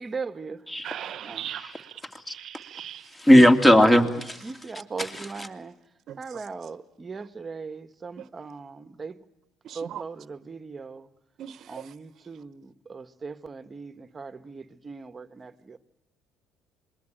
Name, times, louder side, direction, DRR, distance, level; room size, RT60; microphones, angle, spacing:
voice 1, 0.0-0.6 1.2-1.5 4.4-5.7 6.2-9.2 9.7-11.1 11.7-15.8, right 4 dB, 25° right, 1.4 m, -39 dB
voice 2, 0.8-2.0 2.3-3.1 6.1-6.4 7.2-7.3 8.2-8.3 9.6-10.0 11.4-11.9, right 10 dB, 60° right, 1.0 m, -39 dB
voice 3, 3.1-4.5 5.0-5.5, equal, 10° left, 2.7 m, -19 dB
27.0 x 22.0 x 9.0 m
cardioid pair, 100°, 0 cm